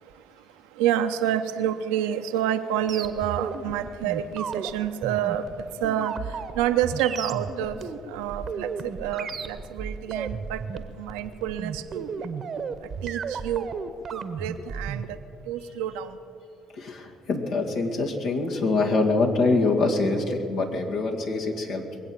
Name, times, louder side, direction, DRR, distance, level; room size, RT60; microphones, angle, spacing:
voice 1, 0.8-5.5 5.8-7.8 8.1-12.3 13.0-13.7 14.1-15.2 15.5-16.2, right 10 dB, 80° right, 9 dB, 0.7 m, -28 dB
sound 1, 2.9-15.1, right 6 dB, 50° right, 0.9 m, -34 dB
voice 2, 16.8-22.0, left 3 dB, 70° left, 0 dB, 2.1 m, -25 dB
22.5 x 8.2 x 7.5 m, 2.6 s
hypercardioid pair, 50°, 0 cm